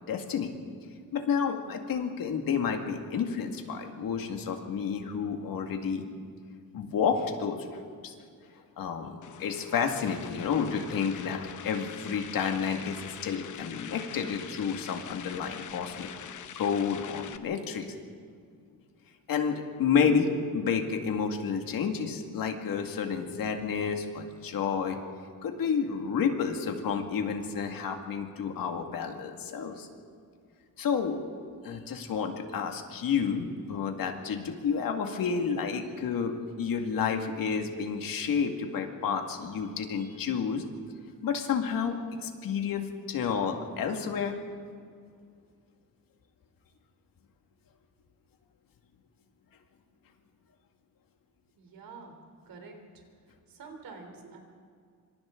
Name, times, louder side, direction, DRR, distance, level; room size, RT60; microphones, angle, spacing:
voice 1, 0.1-0.5 1.1-6.1 6.7-8.1 8.8-17.9 19.3-25.0 25.4-29.9 30.8-31.2 31.6-40.6 41.2-44.4, left 6 dB, 75° left, 4 dB, 2.2 m, -30 dB
sound 1, 9.2-17.4, left 9 dB, 60° left, 1.0 m, -44 dB
voice 2, 51.6-52.2 52.5-53.0 53.5-54.4, right 4 dB, 75° right, 3 dB, 3.6 m, -47 dB
26.5 x 25.5 x 3.9 m, 2.1 s
wide cardioid pair, 175°, 34 cm